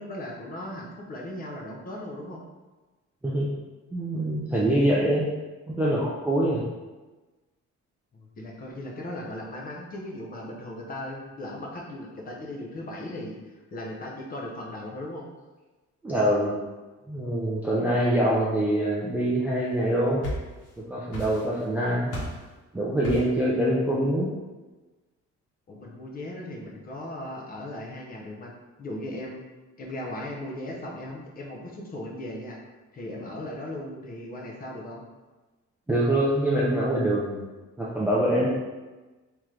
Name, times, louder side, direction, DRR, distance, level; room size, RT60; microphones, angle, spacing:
voice 1, 0.0-2.4 8.1-15.3 25.7-28.5 28.8-29.5 29.8-32.6 32.9-35.0, left 1 dB, 30° left, -1 dB, 0.6 m, -37 dB
voice 2, 3.9-5.3 5.7-6.6 16.0-16.6 17.1-20.2 20.8-22.1 22.7-24.3 35.9-37.4 37.8-38.5, right 1 dB, 5° right, -5 dB, 0.3 m, -24 dB
sound 1, 19.8-20.8 21.1-21.7 22.1-22.5 23.0-23.4, equal, 55° left, 1.3 m, -35 dB
3.7 x 2.9 x 3.1 m, 1.2 s
cardioid pair, 170°, 29 cm